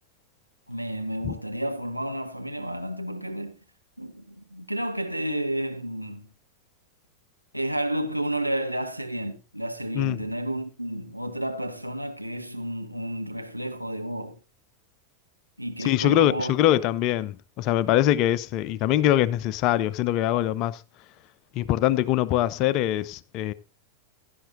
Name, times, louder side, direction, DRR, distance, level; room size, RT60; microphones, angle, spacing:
voice 1, 0.7-3.6 4.0-6.3 7.5-14.4 15.6-16.6, right 1 dB, 90° right, 1.4 m, -31 dB
voice 2, 15.8-20.8 21.5-23.5, left 13 dB, 40° left, 0.7 m, -23 dB
16.0 x 12.0 x 2.6 m
figure-of-eight pair, 90°, 0 cm